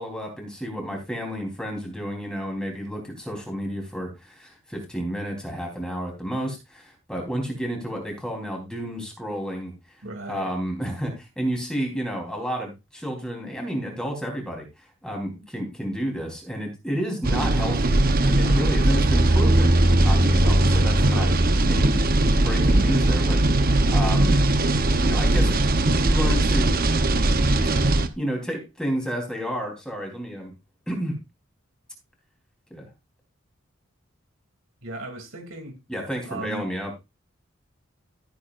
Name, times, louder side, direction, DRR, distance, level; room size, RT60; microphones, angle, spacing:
voice 1, 0.0-9.7 10.3-14.7 15.0-21.3 21.7-24.4 25.0-26.8 28.2-30.5 30.9-31.2 32.7-32.9 35.9-37.0, equal, 5° left, 3.8 m, -31 dB
voice 2, 10.0-10.5 21.0-21.4 34.8-35.8 36.2-36.7, right 2 dB, 90° right, 3.0 m, -36 dB
sound 1, 17.2-28.1, right 1 dB, 45° right, 1.0 m, -19 dB
15.0 x 8.3 x 2.6 m
head